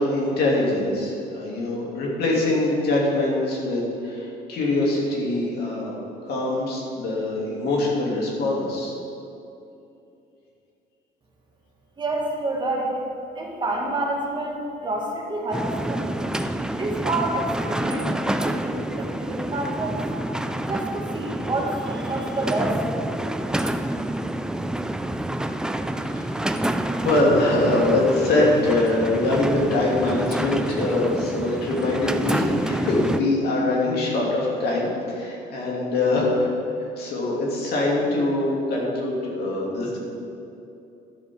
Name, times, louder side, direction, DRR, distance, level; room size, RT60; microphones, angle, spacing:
voice 1, 0.0-5.9 6.2-9.0 26.2-26.5 27.0-36.5 37.0-40.0, left 2 dB, 70° left, -3 dB, 2.8 m, -23 dB
voice 2, 12.0-13.0 13.4-16.1 16.8-20.0 20.6-22.9, right 2 dB, 25° right, -1 dB, 1.9 m, -28 dB
sound 1, 15.5-33.2, right 1 dB, 5° right, 0.4 m, -28 dB
12.0 x 5.4 x 7.1 m, 2.7 s
cardioid pair, 110°, 17 cm